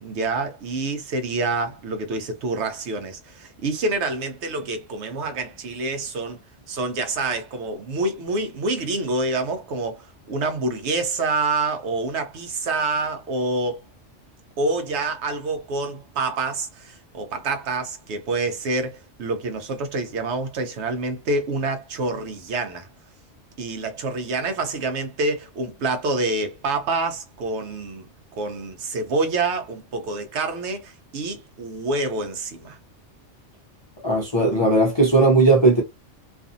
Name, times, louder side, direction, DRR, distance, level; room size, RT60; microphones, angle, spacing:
voice 1, 0.0-6.4 6.7-13.8 14.6-22.9 23.6-28.1 28.4-32.8, right 3 dB, 75° right, 0.9 m, -27 dB
voice 2, 34.0-35.8, right 2 dB, 40° left, 0.4 m, -17 dB
2.5 x 2.4 x 2.5 m
omnidirectional pair, 1.2 m